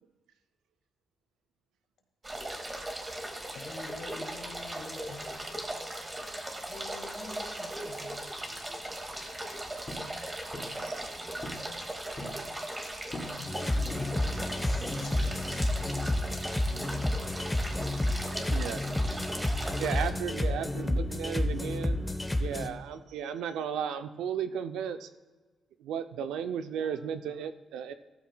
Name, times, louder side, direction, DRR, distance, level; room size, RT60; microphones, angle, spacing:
sound 1, 2.2-20.1, right 1 dB, 25° right, 2.2 m, -38 dB
voice 1, 3.5-5.6 6.7-8.3 13.3-16.0 16.8-16.9 20.4-20.9, left 5 dB, 70° left, 1.9 m, -47 dB
voice 2, 7.4-9.3 10.7-11.8 18.0-18.6, right 3 dB, 45° right, 2.3 m, -51 dB
sound 2, 9.9-10.1 10.5-10.8 11.4-11.7 12.0-12.4 13.1-13.4 13.9-14.3 14.9-15.3, left 1 dB, 35° left, 3.4 m, -42 dB
sound 3, 13.5-22.7, left 1 dB, 15° left, 1.1 m, -30 dB
voice 3, 19.8-22.1 22.4-25.1 25.8-27.9, right 8 dB, 85° right, 0.6 m, -34 dB
15.0 x 13.0 x 2.3 m
supercardioid pair, 60°, 0 cm